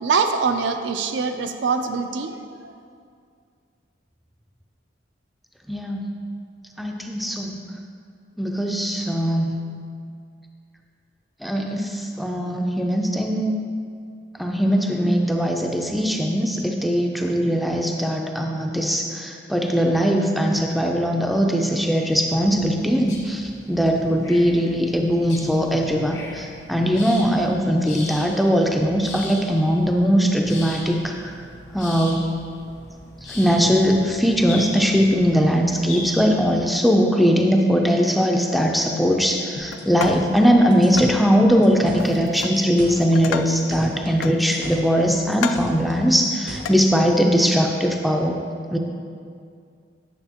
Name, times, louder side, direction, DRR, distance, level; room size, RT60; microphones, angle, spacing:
voice 1, 0.0-2.7, right 5 dB, 75° right, 7 dB, 0.4 m, -24 dB
voice 2, 5.7-6.1 6.8-7.6 8.4-9.5 11.4-13.6 14.4-31.3 31.7-32.3 33.3-48.4 48.7-48.8, equal, ahead, 1 dB, 0.4 m, -20 dB
sound 1, 22.2-36.8, left 2 dB, 60° left, 1.2 m, -40 dB
sound 2, 39.6-42.3 42.6-44.1 44.4-46.8, right 1 dB, 90° right, 1.1 m, -38 dB
sound 3, 39.7-40.4 41.0-41.2 42.0-42.6 43.0-43.7 44.2-44.9 45.3-45.8 46.6-46.8, left 7 dB, 85° left, 0.3 m, -32 dB
9.0 x 6.5 x 2.9 m, 2.3 s
head